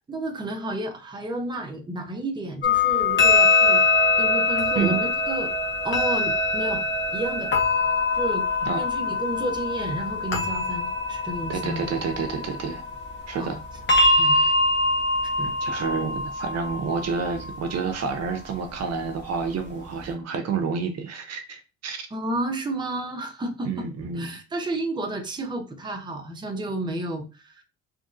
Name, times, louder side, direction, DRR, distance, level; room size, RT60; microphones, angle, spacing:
voice 1, 0.1-3.8 4.2-5.5 5.8-6.8 7.1-7.5 8.1-8.5 8.8-11.8 13.4-13.6 14.2-14.4 15.4-15.5 22.1-23.9 24.2-27.6, right 1 dB, 15° right, 0.6 m, -31 dB
sound 1, 2.6-18.3, left 3 dB, 40° left, 1.0 m, -23 dB
voice 2, 8.6-8.9 11.5-12.8 13.3-13.6 14.0-14.6 15.6-22.1 23.6-24.4, right 5 dB, 60° right, 0.6 m, -29 dB
2.9 x 2.5 x 2.4 m
cardioid pair, 90°, 30 cm